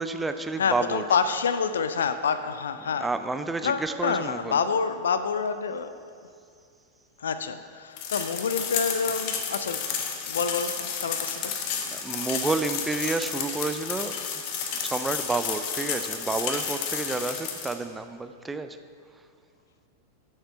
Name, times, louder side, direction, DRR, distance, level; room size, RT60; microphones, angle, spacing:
voice 1, 0.0-1.0 3.0-4.6 11.9-14.1 14.8-18.8, right 3 dB, 10° right, 9 dB, 0.4 m, -30 dB
voice 2, 0.6-3.1 3.6-5.9 7.2-9.9 10.2-11.5, left 6 dB, 65° left, 11 dB, 0.4 m, -27 dB
sound 1, 8.0-17.8, left 7 dB, 45° left, 0.9 m, -31 dB
7.7 x 6.6 x 5.6 m, 2.3 s
figure-of-eight pair, 90°, 0 cm